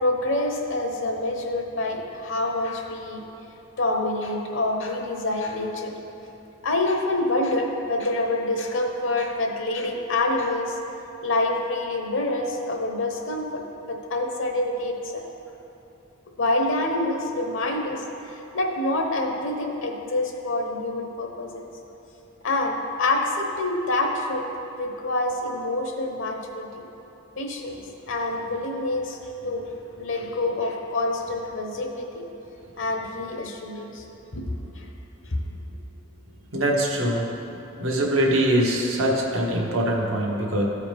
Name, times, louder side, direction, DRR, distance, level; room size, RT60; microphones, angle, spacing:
voice 1, 0.0-3.2 3.8-5.9 6.6-10.8 11.2-13.6 13.9-15.3 16.4-21.6 22.4-24.5 24.8-26.9 27.4-27.8 28.1-29.2 29.4-29.7 30.0-32.3 32.8-34.0 34.8-34.9 35.3-35.4, left 2 dB, 65° left, 2 dB, 1.0 m, -26 dB
voice 2, 36.5-37.3 37.8-40.6, right 1 dB, 85° right, -2 dB, 1.3 m, -23 dB
14.0 x 4.8 x 3.5 m, 3.0 s
head